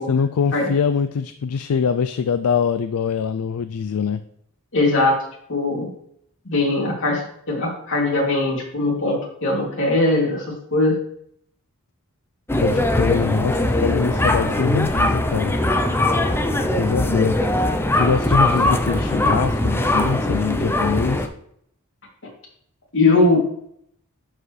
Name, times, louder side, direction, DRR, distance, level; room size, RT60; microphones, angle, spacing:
voice 1, 0.1-4.2 12.6-15.5 16.8-17.4 17.9-21.3, left 6 dB, 75° left, 11 dB, 0.4 m, -23 dB
voice 2, 4.7-5.2 5.5-5.9 6.4-7.2 7.5-10.4 10.7-11.0 22.9-23.4, left 2 dB, 60° left, -3 dB, 2.9 m, -20 dB
sound 1, 12.5-21.3, left 1 dB, 10° left, 0.6 m, -20 dB
11.5 x 4.9 x 3.3 m, 0.70 s
head